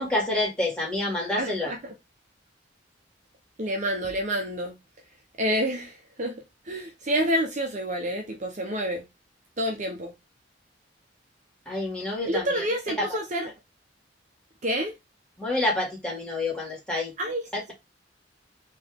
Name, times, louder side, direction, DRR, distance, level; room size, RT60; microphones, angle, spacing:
voice 1, 0.0-1.7 11.7-12.6 13.0-13.1 15.4-17.1 17.5-17.7, left 2 dB, 5° left, 2.2 m, -28 dB
voice 2, 1.4-1.9 3.6-4.8 5.4-9.1 9.6-10.1 12.2-13.5 14.6-14.9 17.2-17.7, equal, 40° right, 0.9 m, -28 dB
4.4 x 3.0 x 3.5 m
head